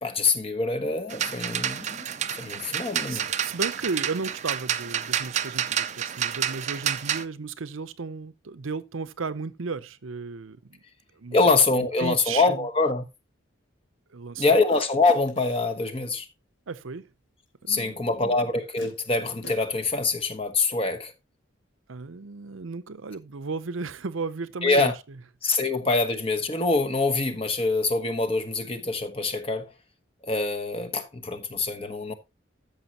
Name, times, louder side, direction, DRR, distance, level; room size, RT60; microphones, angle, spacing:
voice 1, 0.0-2.1 2.4-3.3 11.3-13.0 14.4-16.3 17.7-21.1 24.6-24.9 25.4-29.7 30.2-32.1, left 3 dB, 30° left, 1.2 m, -25 dB
sound 1, 1.1-7.2, right 9 dB, 35° right, 0.5 m, -29 dB
voice 2, 3.1-10.8 11.2-11.4 11.7-12.7 14.1-14.6 16.7-17.1 17.6-18.5 21.9-24.9 25.4-25.6, right 4 dB, 80° right, 0.7 m, -35 dB
sound 2, 14.7-15.8 17.6-17.7 18.8-19.9, equal, 65° left, 3.4 m, -46 dB
13.5 x 6.6 x 2.9 m
head